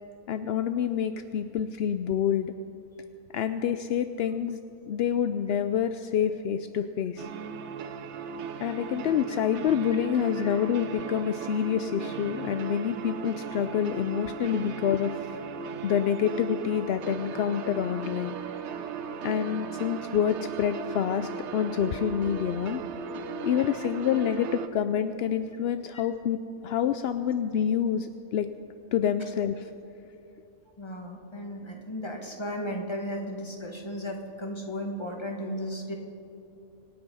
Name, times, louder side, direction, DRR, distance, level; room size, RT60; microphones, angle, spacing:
voice 1, 0.3-2.5 3.3-4.6 4.9-7.3 8.6-15.4 15.8-18.9 19.2-22.8 23.4-28.5 28.9-29.7, left 8 dB, 65° left, 10 dB, 0.6 m, -27 dB
sound 1, 7.2-24.7, right 5 dB, 60° right, 0.9 m, -37 dB
voice 2, 30.8-35.9, equal, 20° left, 1 dB, 1.9 m, -35 dB
26.0 x 9.1 x 5.5 m, 2.7 s
omnidirectional pair, 1.5 m